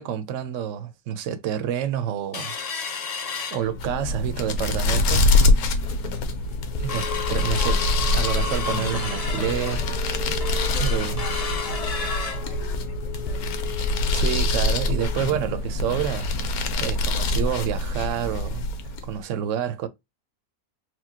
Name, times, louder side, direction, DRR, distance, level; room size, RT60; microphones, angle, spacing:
voice 1, 0.0-2.5 3.5-5.4 6.8-7.7 8.1-9.8 10.8-11.2 14.1-16.4 16.8-18.6 19.1-19.9, right 9 dB, 65° right, 0.9 m, -28 dB
sound 1, 2.3-4.2 4.6-4.7 5.0-5.4 5.9-6.0 6.3-16.8 17.2-17.3 17.6-17.8 18.3-18.4, left 5 dB, 55° left, 0.4 m, -33 dB
sound 2, 3.6-19.2, left 2 dB, 85° left, 1.2 m, -25 dB
voice 2, 7.4-8.0 10.7-13.5, left 1 dB, 40° left, 1.8 m, -44 dB
4.3 x 2.3 x 2.8 m
omnidirectional pair, 1.5 m